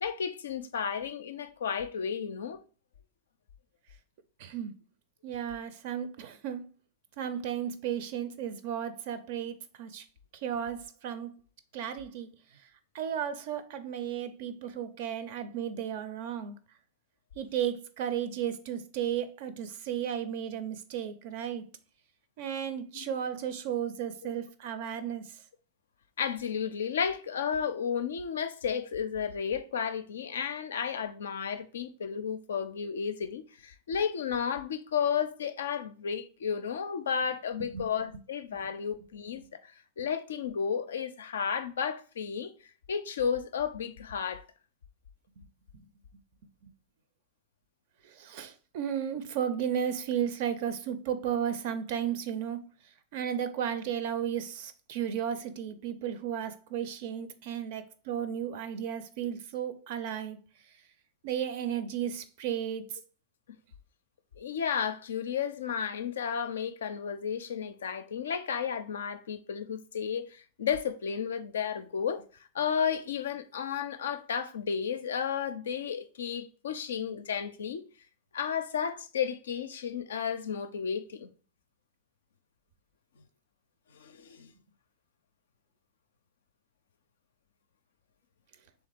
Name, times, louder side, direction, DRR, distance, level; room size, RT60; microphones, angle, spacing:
voice 1, 0.0-2.6 22.9-23.1 24.2-24.3 26.2-39.7 40.0-42.5 42.9-44.4 64.4-72.2 72.5-77.8 78.3-81.3 83.9-84.5, left 7 dB, 65° left, 0.4 m, -33 dB
voice 2, 4.4-4.7 5.2-6.6 7.2-10.0 10.4-11.3 11.7-12.3 12.9-16.6 17.4-21.7 22.4-25.3 37.6-37.9 40.0-40.1 45.7-45.9 46.6-46.7 48.0-52.6 53.1-60.4 61.2-62.9, right 9 dB, 50° right, 0.5 m, -34 dB
3.5 x 3.2 x 4.7 m
figure-of-eight pair, 90°, 0 cm